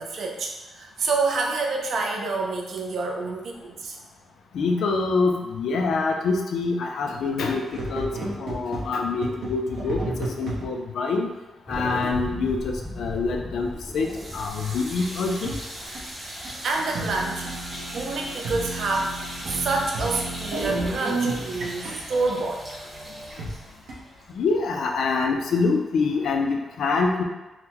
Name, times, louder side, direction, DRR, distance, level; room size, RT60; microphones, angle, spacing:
voice 1, 0.0-4.0 16.6-17.5 17.9-19.1 19.5-22.6, right 3 dB, 55° right, 1 dB, 0.4 m, -27 dB
voice 2, 4.5-7.6 7.9-8.1 8.4-10.0 10.4-11.3 11.7-15.5 24.3-27.2, left 4 dB, 65° left, 2 dB, 0.4 m, -25 dB
sound 1, 7.7-10.7 13.0-13.1 13.8-13.9 15.4-15.6 15.9-16.0 16.4-16.5 16.8-23.5 23.9-24.0, right 2 dB, 70° right, 0.8 m, -32 dB
sound 2, 11.7-16.3, left 1 dB, 5° left, 0.5 m, -37 dB
sound 3, 13.9-25.0, equal, 40° right, 1.1 m, -39 dB
3.6 x 2.1 x 2.9 m, 1.0 s
wide cardioid pair, 170°, 0 cm